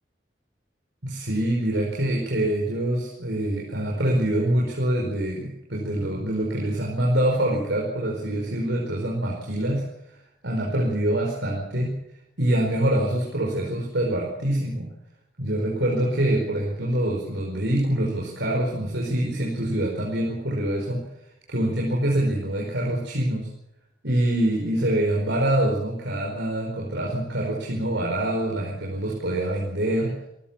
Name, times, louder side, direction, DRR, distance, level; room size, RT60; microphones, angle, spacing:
voice 1, 1.0-9.8 10.4-12.0 12.4-14.9 15.4-21.0 21.5-23.5 24.0-30.1, right 1 dB, 80° right, -1 dB, 4.9 m, -25 dB
27.0 x 15.5 x 7.4 m, 0.83 s
head